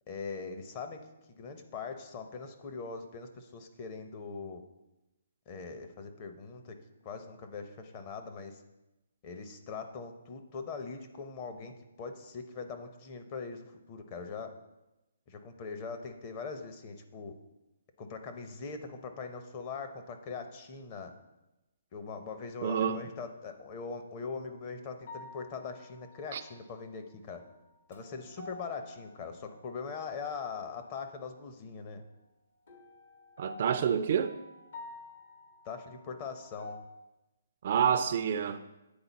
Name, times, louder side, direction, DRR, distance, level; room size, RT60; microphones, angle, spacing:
voice 1, 0.1-1.0 1.3-4.6 5.5-6.8 7.0-8.6 9.2-14.5 15.3-17.3 18.0-21.1 21.9-27.4 27.9-32.0 35.6-36.8, left 5 dB, 30° left, 0.7 m, -41 dB
voice 2, 22.6-23.0 26.3-26.4 33.4-34.4 37.6-38.6, right 7 dB, 50° right, 0.3 m, -28 dB
sound 1, 24.3-24.6 25.1-26.9 27.4-30.3 32.7-36.8, left 2 dB, 70° left, 1.4 m, -50 dB
8.6 x 4.0 x 4.0 m
hypercardioid pair, 150°, 0 cm